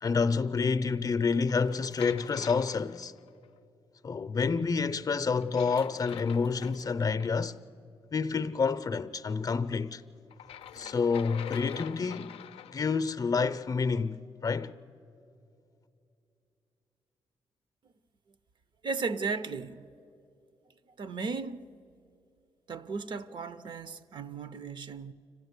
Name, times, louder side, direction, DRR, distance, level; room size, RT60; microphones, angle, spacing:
voice 1, 0.0-3.1 4.0-7.6 8.1-10.0 10.7-12.4 12.7-14.7, left 5 dB, 40° left, 0.6 m, -28 dB
sound 1, 1.5-3.5 5.4-7.3 10.3-13.0, left 10 dB, 85° left, 0.4 m, -45 dB
voice 2, 18.8-19.9 21.0-21.7 22.7-25.1, right 4 dB, 55° right, 0.7 m, -35 dB
26.0 x 15.5 x 8.2 m
cardioid pair, 100°, 10 cm